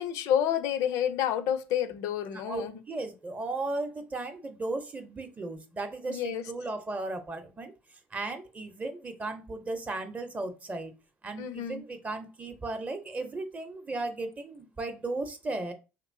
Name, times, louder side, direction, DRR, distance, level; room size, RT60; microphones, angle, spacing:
voice 1, 0.0-2.8 6.1-6.5 11.4-11.8, left 9 dB, 70° left, 0.4 m, -29 dB
voice 2, 2.3-7.7 8.1-10.9 11.2-15.7, right 2 dB, 25° right, 0.6 m, -36 dB
3.0 x 2.9 x 2.6 m
supercardioid pair, 85°, 6 cm